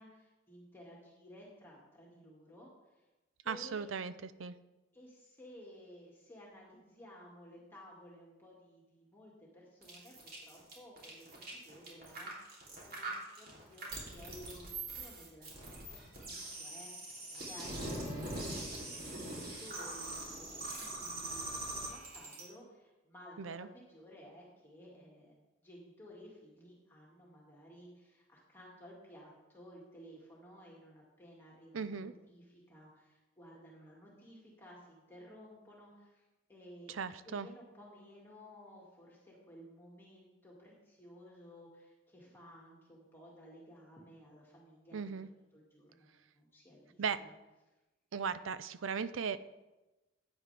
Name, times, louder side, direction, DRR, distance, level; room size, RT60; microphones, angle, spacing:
voice 1, 0.0-3.1 3.4-3.9 4.9-17.9 18.3-25.3 25.6-36.2 36.5-37.0 37.2-46.1 46.3-47.3, equal, 10° left, -4 dB, 2.0 m, -56 dB
voice 2, 3.5-4.1 4.4-4.6 23.4-23.7 31.7-32.1 36.9-37.5 44.9-45.3 47.0-47.2 48.1-49.5, right 6 dB, 75° right, 14 dB, 0.5 m, -37 dB
sound 1, 9.8-22.4, right 2 dB, 45° right, 3.1 m, -43 dB
15.5 x 9.1 x 3.4 m, 1.1 s
head